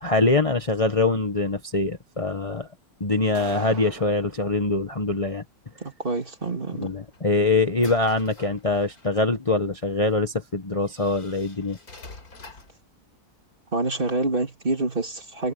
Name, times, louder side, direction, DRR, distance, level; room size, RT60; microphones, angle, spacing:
voice 1, 0.0-2.7 3.0-5.4 6.8-11.8, left 2 dB, 25° left, 1.1 m, -23 dB
sound 1, 3.3-4.4, right 5 dB, 85° right, 2.4 m, -41 dB
voice 2, 5.8-6.9 13.7-15.5, right 2 dB, 35° right, 2.9 m, -27 dB
sound 2, 6.8-9.2 10.1-10.2 10.8-12.8, left 3 dB, 85° left, 4.2 m, -47 dB
omnidirectional pair, 1.5 m